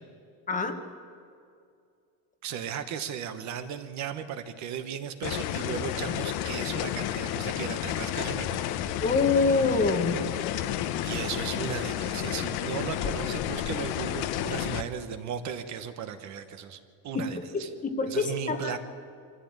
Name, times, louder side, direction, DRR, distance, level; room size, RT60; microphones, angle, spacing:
voice 1, 0.5-0.8 9.0-10.2 17.1-18.8, left 4 dB, 20° left, 6 dB, 1.2 m, -26 dB
voice 2, 2.4-9.0 11.0-17.7 18.1-18.8, right 8 dB, 45° right, 9 dB, 1.2 m, -36 dB
sound 1, 5.2-14.8, left 11 dB, 70° left, 1.1 m, -31 dB
24.0 x 14.0 x 8.8 m, 2.4 s
cardioid pair, 180°, 39 cm